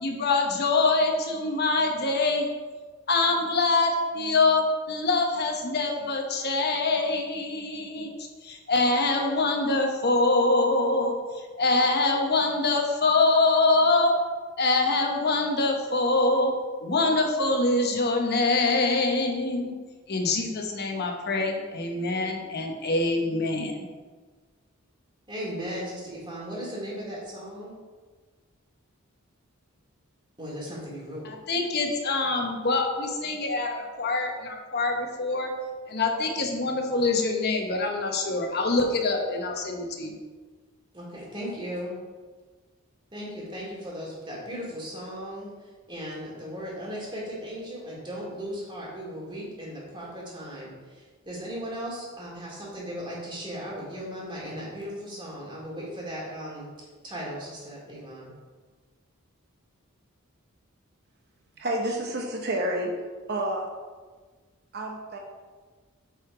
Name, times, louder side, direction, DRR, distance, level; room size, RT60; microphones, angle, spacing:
voice 1, 0.0-2.5 3.1-8.1 8.4-11.2 11.6-14.1 14.6-16.5 16.8-19.7 20.1-23.9 31.2-35.5 35.9-40.2, left 3 dB, 50° left, 2 dB, 1.0 m, -24 dB
voice 2, 25.3-27.7 30.4-31.3 40.9-42.0 43.1-45.5 45.9-56.7 57.0-58.3, equal, 25° right, -4 dB, 2.5 m, -37 dB
voice 3, 61.6-62.9 63.3-63.7 64.7-65.2, right 1 dB, 50° right, 1 dB, 0.9 m, -29 dB
8.2 x 4.9 x 4.8 m, 1.4 s
head